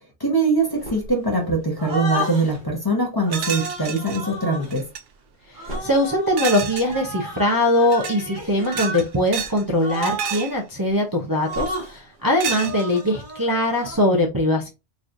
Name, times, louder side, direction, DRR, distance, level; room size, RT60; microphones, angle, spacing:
voice 1, 0.2-4.8, right 2 dB, 20° left, 0.9 m, -22 dB
sound 1, 0.8-1.5 1.8-2.6 3.2-4.7 5.5-9.1 9.4-9.5 9.8-10.5 11.4-12.0 12.5-13.9, equal, 45° right, 1.6 m, -32 dB
sound 2, 3.3-4.2 4.6-5.0 6.4-6.9 7.8-8.2 8.6-9.6 9.9-10.6 11.5-11.8 12.4-13.1, right 8 dB, 65° right, 0.7 m, -30 dB
voice 2, 5.8-14.7, left 1 dB, 25° right, 0.6 m, -21 dB
4.1 x 3.1 x 2.6 m
omnidirectional pair, 1.2 m